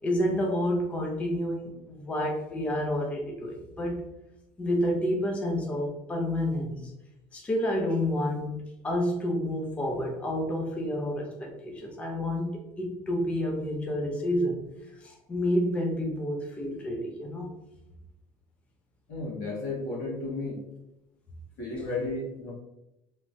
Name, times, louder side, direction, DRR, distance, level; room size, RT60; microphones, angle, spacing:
voice 1, 0.0-4.0 4.6-6.9 7.3-14.6 15.0-17.5, left 1 dB, 10° left, 0 dB, 0.4 m, -29 dB
voice 2, 19.1-20.6 21.6-22.5, left 2 dB, 80° left, -4 dB, 1.4 m, -33 dB
2.9 x 2.1 x 2.6 m, 0.90 s
cardioid pair, 145°, 10 cm